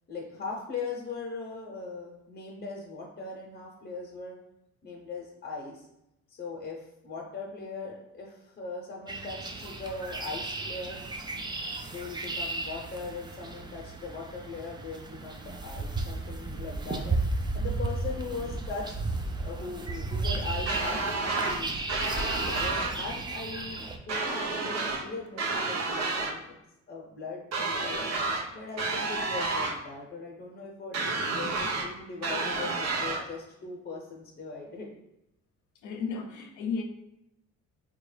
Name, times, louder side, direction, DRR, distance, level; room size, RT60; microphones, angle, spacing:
voice 1, 0.1-4.4 4.8-5.9 6.3-11.0 11.8-17.2 17.5-19.0 19.4-21.8 22.4-26.6 26.9-28.0 28.5-34.9, left 4 dB, 35° left, 0.7 m, -40 dB
sound 1, 9.1-24.0, right 3 dB, 15° right, 0.3 m, -34 dB
sound 2, 20.7-21.6 21.9-22.9 24.1-25.0 25.4-26.3 27.5-28.4 28.8-29.8 30.9-31.9 32.2-33.2, right 3 dB, 60° right, 0.6 m, -30 dB
voice 2, 35.8-36.8, left 5 dB, 75° left, 0.6 m, -33 dB
3.8 x 2.3 x 3.2 m
cardioid pair, 90°, 30 cm